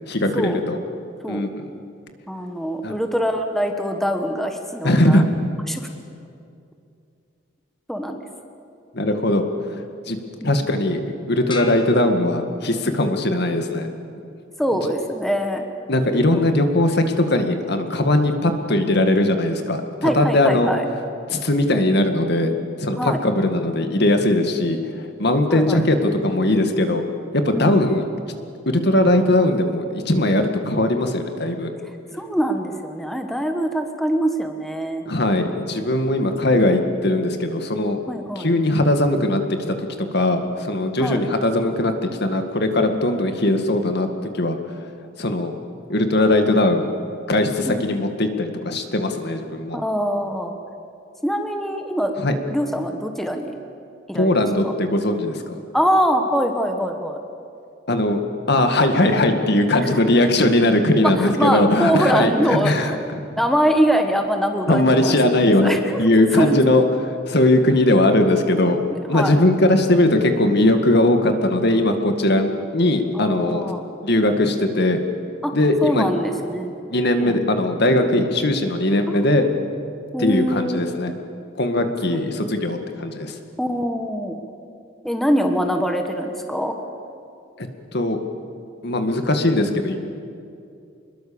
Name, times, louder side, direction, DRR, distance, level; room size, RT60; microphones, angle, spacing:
voice 1, 0.1-0.8 1.3-1.7 2.8-2.9 4.8-5.2 8.9-9.4 10.1-10.2 10.4-13.9 15.9-20.7 21.3-22.5 22.8-24.8 25.2-27.0 27.3-28.0 28.7-31.7 35.1-38.0 38.4-44.1 44.3-44.6 45.2-45.5 45.9-46.9 47.3-49.8 52.2-52.4 54.1-55.6 57.9-58.2 58.5-62.9 64.7-68.8 69.1-73.7 74.0-75.0 75.5-76.1 76.9-79.5 80.2-81.1 81.6-83.3 87.6-87.7 87.9-88.2 88.8-90.0, left 1 dB, 60° left, 6 dB, 2.0 m, -19 dB
voice 2, 2.3-5.2 5.7-5.9 7.9-8.2 10.4-10.6 14.6-15.7 16.3-16.4 20.0-20.8 21.8-22.0 23.0-23.2 25.5-25.9 27.5-27.9 32.1-35.0 36.2-36.5 38.1-38.5 41.0-41.2 47.7-47.8 49.7-50.5 51.2-52.1 52.5-53.6 54.1-54.7 55.7-57.2 59.8-60.0 61.1-63.0 63.3-65.2 65.6-66.0 66.3-66.6 68.9-69.4 73.1-73.8 75.4-75.5 75.8-76.9 77.2-77.4 79.1-79.2 80.1-80.8 83.6-84.4 85.0-86.7, equal, ahead, 4 dB, 1.4 m, -23 dB
sound 1, 11.5-13.0, left 3 dB, 25° left, 1.7 m, -38 dB
25.5 x 21.5 x 7.1 m, 2.5 s
head